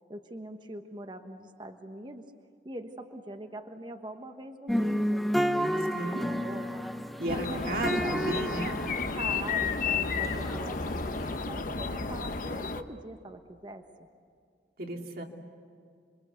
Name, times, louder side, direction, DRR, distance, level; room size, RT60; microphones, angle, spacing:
voice 1, 0.1-2.3 2.6-6.8 7.3-8.3 9.1-13.9, right 1 dB, 25° right, 6 dB, 1.2 m, -43 dB
sound 1, 4.7-11.4, equal, ahead, 0.8 m, -32 dB
voice 2, 5.9-6.2 7.2-8.8 14.8-15.2, right 1 dB, 55° right, 2 dB, 2.8 m, -34 dB
sound 2, 7.3-12.8, left 4 dB, 50° left, 1.0 m, -32 dB
27.5 x 23.5 x 8.2 m, 2.2 s
head